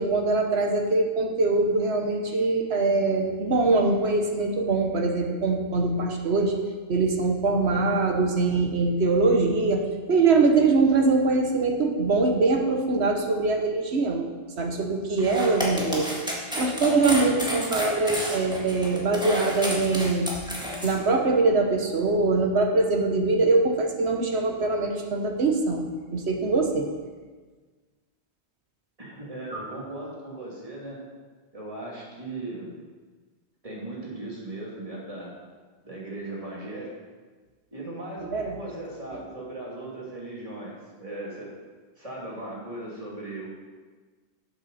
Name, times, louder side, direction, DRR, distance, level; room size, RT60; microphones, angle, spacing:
voice 1, 0.0-6.5 6.9-14.3 14.6-16.1 16.6-20.3 20.8-26.9 38.3-38.6 39.1-39.2, right 3 dB, 80° right, 3 dB, 1.5 m, -23 dB
sound 1, 15.2-20.9, left 1 dB, 5° right, 1.8 m, -31 dB
voice 2, 29.0-31.0 31.5-32.8 33.6-35.3 35.8-37.0 37.7-41.5 42.0-43.5, right 2 dB, 35° right, -5 dB, 2.8 m, -37 dB
12.0 x 8.0 x 4.2 m, 1.4 s
omnidirectional pair, 1.1 m